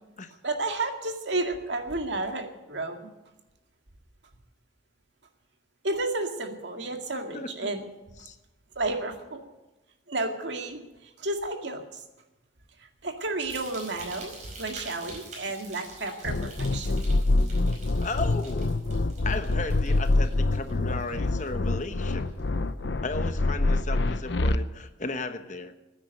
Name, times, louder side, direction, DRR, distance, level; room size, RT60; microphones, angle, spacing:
voice 1, 0.4-3.1 5.8-7.9 8.8-9.4 10.1-12.0 12.8-17.0, right 2 dB, 70° right, 4 dB, 2.1 m, -32 dB
sound 1, 13.5-21.8 22.1-22.5 23.1-23.2, right 3 dB, 40° right, 4.9 m, -46 dB
sound 2, 16.2-24.6, left 2 dB, 65° left, 0.7 m, -26 dB
voice 2, 18.0-18.7 19.2-22.3 23.0-25.7, left 3 dB, 40° left, 9 dB, 1.1 m, -35 dB
15.5 x 9.4 x 9.1 m, 1.0 s
head